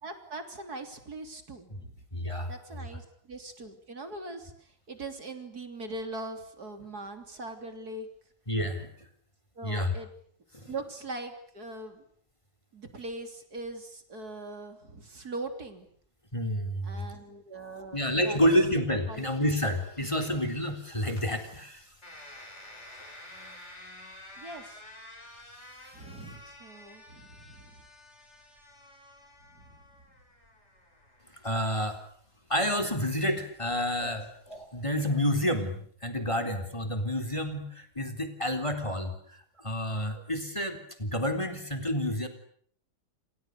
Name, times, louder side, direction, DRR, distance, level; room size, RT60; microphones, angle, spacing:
voice 1, 0.0-1.9 2.5-8.1 9.6-10.1 10.7-12.0 12.7-15.9 16.8-18.4 19.1-19.3 24.4-24.8 25.9-27.8 29.6-29.8, right 2 dB, 65° right, 6 dB, 3.8 m, -41 dB
voice 2, 2.1-2.5 8.5-8.9 9.6-9.9 10.5-10.7 16.3-17.1 17.9-21.8 31.4-32.0 32.5-34.3 34.7-42.3, equal, 15° left, 8 dB, 3.9 m, -29 dB
sound 1, 18.4-34.6, left 1 dB, 40° left, 5.9 m, -50 dB
28.5 x 28.5 x 6.8 m, 0.63 s
omnidirectional pair, 1.8 m